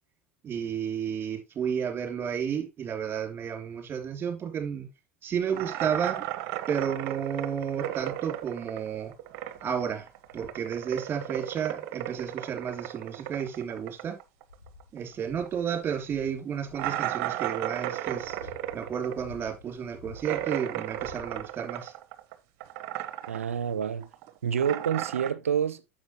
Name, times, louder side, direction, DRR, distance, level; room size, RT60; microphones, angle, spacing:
voice 1, 0.4-4.9 5.2-6.3 6.7-9.1 9.6-10.1 10.3-14.2 14.9-18.4 18.7-21.9, right 7 dB, 30° right, 2.9 m, -32 dB
sound 1, 5.5-9.8 10.1-15.1 15.4-15.5 15.9-16.0 16.8-22.3 22.6-23.5 23.8-25.3, right 13 dB, 55° right, 1.0 m, -35 dB
sound 2, 8.1-8.4 9.0-9.1 9.5-9.8 10.2-10.7 12.1-12.2 13.0-13.7 14.2-17.0 17.7-20.5 20.8-21.8 22.6-22.7, left 4 dB, 85° left, 1.5 m, -51 dB
voice 2, 23.3-24.1 24.4-25.8, right 8 dB, 80° right, 0.7 m, -28 dB
9.5 x 7.2 x 3.0 m
hypercardioid pair, 80°, 7 cm